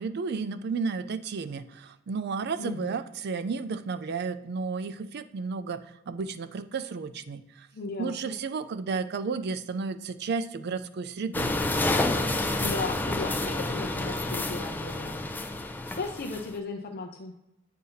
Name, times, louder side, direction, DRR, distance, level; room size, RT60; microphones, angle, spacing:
voice 1, 0.0-7.7 8.0-11.6, right 4 dB, 55° right, 11 dB, 0.4 m, -32 dB
voice 2, 2.6-2.9 7.7-8.3 12.6-15.3 16.0-17.3, left 3 dB, 50° left, 1 dB, 0.6 m, -36 dB
sound 1, 11.3-16.5, left 2 dB, 10° left, 0.4 m, -29 dB
7.7 x 2.8 x 5.6 m, 0.90 s
head